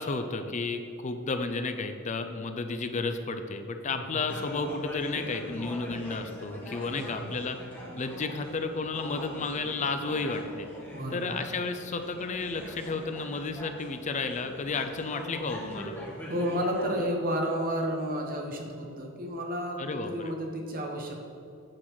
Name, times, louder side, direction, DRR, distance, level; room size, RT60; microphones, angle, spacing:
voice 1, 0.0-7.6 8.0-10.7 11.1-15.9 19.8-20.3, left 3 dB, 35° left, 7 dB, 0.5 m, -32 dB
voice 2, 3.9-4.2 6.9-7.3 10.9-11.2 16.3-21.1, equal, 40° right, 1 dB, 1.1 m, -31 dB
sound 1, 4.3-17.0, equal, 10° left, 1.4 m, -42 dB
8.8 x 4.0 x 6.1 m, 2.5 s
head